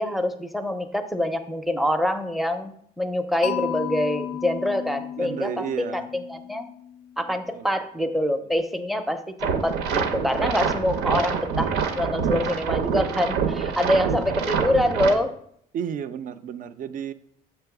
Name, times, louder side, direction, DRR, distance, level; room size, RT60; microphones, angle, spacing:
voice 1, 0.0-5.7 5.9-6.7 7.2-15.3, left 1 dB, ahead, 8 dB, 0.5 m, -25 dB
Mallet percussion, 3.4-7.4, left 10 dB, 65° left, 0.4 m, -34 dB
voice 2, 5.2-6.1 7.3-7.7 14.0-14.1 14.6-14.7 15.7-17.1, right 8 dB, 50° right, 11 dB, 0.5 m, -33 dB
sound 1, 9.4-15.1, right 6 dB, 90° right, 0.7 m, -26 dB
6.8 x 3.0 x 5.9 m, 0.68 s
cardioid pair, 110°, 17 cm